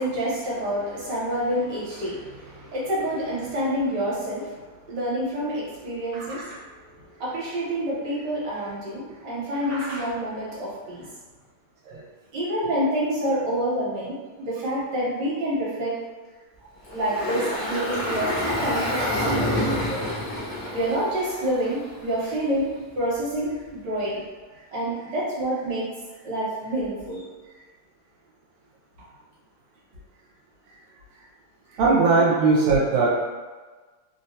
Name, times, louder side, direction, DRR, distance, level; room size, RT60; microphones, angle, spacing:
voice 1, 0.0-4.6 4.9-6.5 7.2-11.1 12.3-15.9 16.9-20.0 20.7-24.2 24.5-25.9 26.2-27.2 31.7-31.8, right 1 dB, 60° right, -7 dB, 1.5 m, -28 dB
voice 2, 9.7-10.0 11.9-12.0 31.8-33.2, right 3 dB, 80° right, -5 dB, 1.5 m, -20 dB
Engine, 16.8-22.1, left 1 dB, 75° left, 0.3 m, -27 dB
3.4 x 2.2 x 2.7 m, 1.3 s
omnidirectional pair, 2.2 m